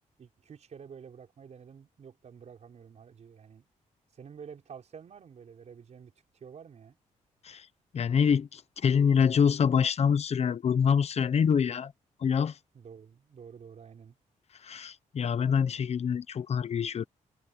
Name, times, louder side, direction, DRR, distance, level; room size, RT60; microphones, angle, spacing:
voice 1, 0.2-3.6 4.1-7.0 12.7-14.2, right 7 dB, 55° right, 5.1 m, -49 dB
voice 2, 7.9-11.9 12.2-12.5 14.6-17.0, left 7 dB, 50° left, 0.8 m, -26 dB
cardioid pair, 110°, 14 cm